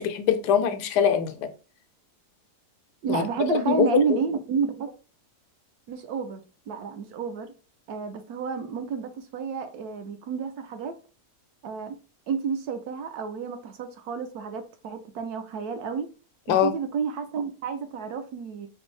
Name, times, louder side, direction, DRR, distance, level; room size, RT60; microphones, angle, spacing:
voice 1, 0.0-1.5 3.1-3.2 3.5-4.0 16.5-16.7, left 8 dB, 85° left, 1.2 m, -23 dB
voice 2, 3.0-4.9 5.9-7.5 7.9-11.0 11.6-12.0 12.3-16.1 16.5-18.7, right 6 dB, 75° right, 1.1 m, -30 dB
4.3 x 2.7 x 3.1 m
omnidirectional pair, 1.7 m